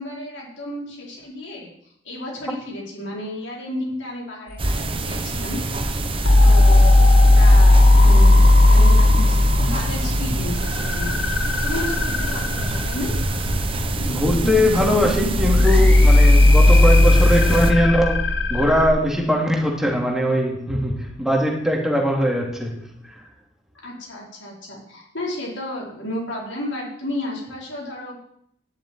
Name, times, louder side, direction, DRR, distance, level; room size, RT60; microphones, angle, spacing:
voice 1, 0.0-1.7 2.0-6.0 6.4-13.1 23.8-28.2, left 1 dB, 90° left, -3 dB, 5.0 m, -32 dB
sound 1, 4.6-17.7, right 2 dB, 30° right, 1.0 m, -27 dB
sound 2, 6.2-18.9, left 1 dB, 70° left, 1.8 m, -16 dB
voice 2, 14.0-22.8 23.0-23.1, equal, 5° right, -1 dB, 2.6 m, -21 dB
10.5 x 7.5 x 9.5 m, 0.71 s
head